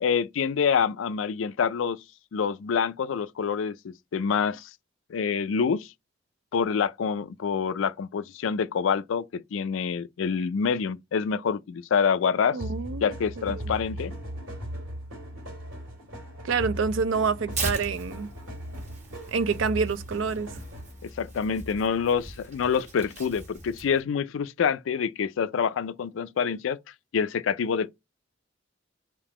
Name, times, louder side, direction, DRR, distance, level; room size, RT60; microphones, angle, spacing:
voice 1, 0.0-2.0 2.3-4.7 5.1-5.9 6.5-12.6 13.0-14.1 21.0-26.8 27.1-27.9, left 6 dB, 80° left, 0.4 m, -26 dB
voice 2, 12.5-13.0 13.4-13.7 16.4-18.3 19.3-20.5, right 5 dB, 70° right, 0.4 m, -27 dB
sound 1, 12.6-21.0, equal, 90° right, 1.9 m, -38 dB
Tearing, 17.5-24.0, right 2 dB, 35° right, 1.1 m, -39 dB
3.6 x 2.8 x 4.8 m
head